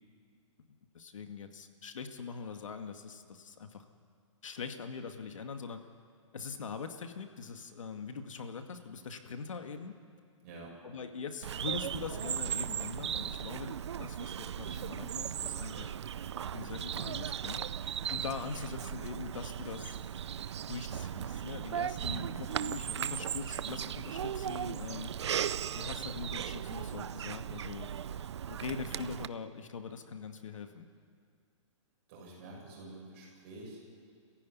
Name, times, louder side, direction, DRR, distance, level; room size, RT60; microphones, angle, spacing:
voice 1, 0.7-3.9 4.4-5.8 6.3-10.0 10.8-15.9 16.5-17.6 18.1-20.0 20.7-25.1 25.7-27.9 28.5-30.9, left 5 dB, 80° left, 6 dB, 2.1 m, -42 dB
voice 2, 10.4-10.7 22.1-22.4 32.1-33.8, right 2 dB, 25° right, -3 dB, 6.9 m, -48 dB
Bird vocalization bird call bird song, 11.4-29.3, right 9 dB, 60° right, 0.6 m, -37 dB
28.5 x 15.5 x 9.6 m, 2.2 s
hypercardioid pair, 175°, 16 cm